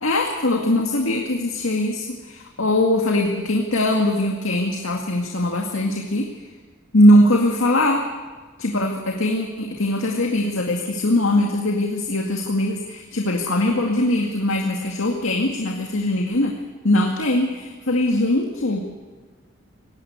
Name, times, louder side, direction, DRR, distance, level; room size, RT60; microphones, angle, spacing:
voice 1, 0.0-6.3 6.9-8.1 8.6-16.5 16.8-18.8, left 1 dB, 90° left, 1 dB, 2.1 m, -21 dB
19.0 x 16.0 x 9.5 m, 1.4 s
head